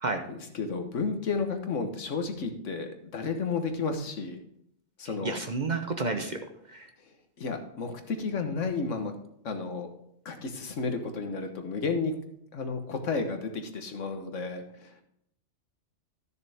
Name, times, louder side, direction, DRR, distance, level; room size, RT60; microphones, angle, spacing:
voice 1, 0.3-4.4 5.0-5.4 7.4-9.1 9.4-9.9 10.2-12.2 12.5-14.9, left 4 dB, 70° left, 6 dB, 1.5 m, -32 dB
voice 2, 5.2-6.4 6.7-6.9, right 3 dB, 40° right, 6 dB, 0.8 m, -30 dB
13.0 x 6.9 x 3.5 m, 0.72 s
omnidirectional pair, 1.3 m